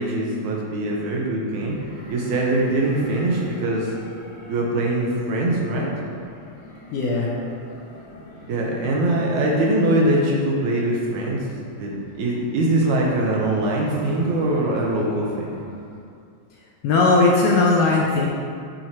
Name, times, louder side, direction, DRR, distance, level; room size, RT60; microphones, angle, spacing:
voice 1, 0.0-1.8 2.1-3.9 4.5-5.9 8.5-15.6, right 1 dB, 90° right, -2 dB, 2.3 m, -22 dB
sound 1, 1.6-16.1, equal, 60° left, 1.2 m, -43 dB
voice 2, 6.9-7.3 16.8-18.3, left 3 dB, 75° left, -3 dB, 1.5 m, -18 dB
7.7 x 2.9 x 4.6 m, 2.3 s
omnidirectional pair, 3.3 m